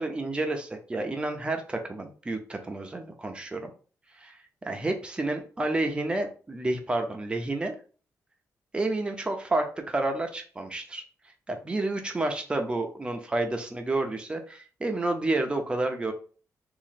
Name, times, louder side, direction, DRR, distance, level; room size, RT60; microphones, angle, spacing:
voice 1, 0.0-3.7 4.1-7.8 8.7-11.0 11.5-16.1, right 2 dB, 15° right, 4 dB, 0.6 m, -30 dB
3.0 x 2.5 x 4.0 m, 0.40 s
wide cardioid pair, 150°, 6 cm